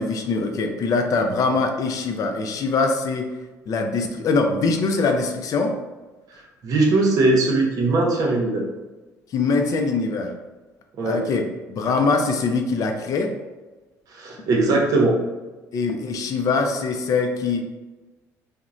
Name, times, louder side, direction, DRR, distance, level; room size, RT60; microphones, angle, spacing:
voice 1, 0.0-3.3 3.7-5.7 9.3-10.3 11.0-11.4 11.7-13.3 15.7-17.6, left 4 dB, 55° left, 4 dB, 0.4 m, -22 dB
voice 2, 6.6-8.6 11.0-11.2 14.1-15.2, right 2 dB, 60° right, -1 dB, 0.7 m, -20 dB
3.0 x 2.1 x 2.4 m, 1.2 s
supercardioid pair, 75°, 7 cm